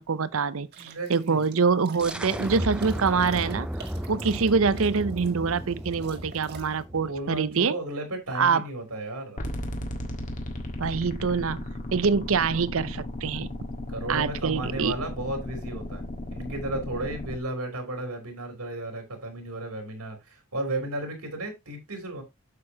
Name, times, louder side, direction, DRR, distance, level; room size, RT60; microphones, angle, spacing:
voice 1, 0.0-3.7 4.1-7.8 8.3-8.6 10.8-11.6 11.9-13.5 14.1-14.9, right 5 dB, 65° right, 0.6 m, -25 dB
sound 1, 0.7-6.8, right 4 dB, 45° right, 1.5 m, -47 dB
voice 2, 0.8-1.4 6.9-9.5 13.9-22.2, right 1 dB, 85° right, 3.2 m, -34 dB
sound 2, 2.0-7.5, equal, 5° right, 0.5 m, -35 dB
sound 3, 9.4-17.4, left 1 dB, 35° left, 1.6 m, -35 dB
8.3 x 6.8 x 2.9 m
head